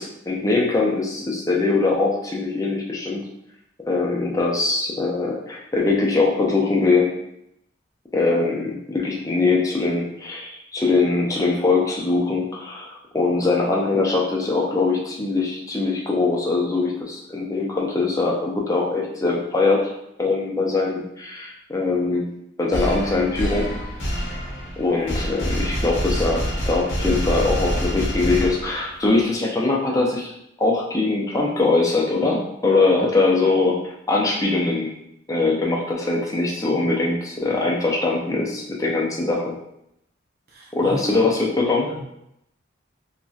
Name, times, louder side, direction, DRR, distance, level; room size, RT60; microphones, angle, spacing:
voice 1, 0.0-3.3 3.8-7.1 8.1-19.9 20.2-22.3 22.6-23.7 24.8-30.3 30.6-33.8 34.1-34.9 35.3-39.4 40.7-41.9, left 3 dB, 15° left, -2 dB, 0.5 m, -22 dB
sound 1, 22.7-29.1, equal, 70° left, 0.8 m, -26 dB
voice 2, 40.5-41.2 41.9-42.0, equal, 50° right, -2 dB, 0.7 m, -33 dB
2.9 x 2.7 x 2.3 m, 0.79 s
head